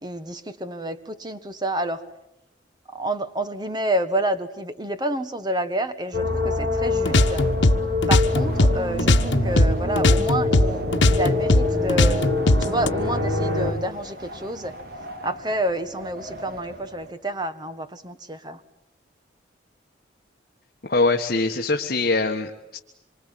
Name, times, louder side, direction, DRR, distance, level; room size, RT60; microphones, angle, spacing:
voice 1, 0.0-2.0 2.9-7.4 8.1-12.2 12.6-14.7 15.2-18.6, right 1 dB, 20° right, 10 dB, 1.4 m, -29 dB
sound 1, 6.1-13.7, left 2 dB, 70° right, 5.4 m, -25 dB
Wind, 6.7-17.1, right 1 dB, 50° right, 2.6 m, -38 dB
sound 2, 7.0-9.7 10.0-12.9, left 2 dB, 80° left, 1.3 m, -19 dB
voice 2, 20.8-22.8, left 3 dB, 50° left, 2 dB, 1.5 m, -23 dB
26.5 x 24.5 x 9.2 m, 0.88 s
head